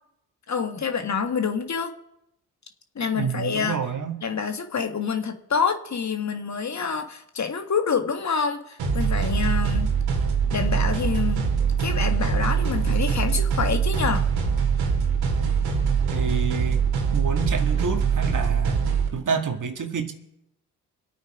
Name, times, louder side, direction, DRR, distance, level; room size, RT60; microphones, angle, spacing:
voice 1, 0.5-2.0 3.0-3.8 4.2-10.0 10.5-11.5 11.8-14.3, left 6 dB, 45° left, 6 dB, 1.8 m, -27 dB
voice 2, 3.1-4.2 16.1-16.8 17.1-18.8 19.1-20.1, right 6 dB, 50° right, 5 dB, 2.1 m, -28 dB
sound 1, 8.8-19.1, right 6 dB, 70° right, 2.5 m, -23 dB
26.0 x 8.7 x 5.1 m, 0.83 s
hypercardioid pair, 40°, 39 cm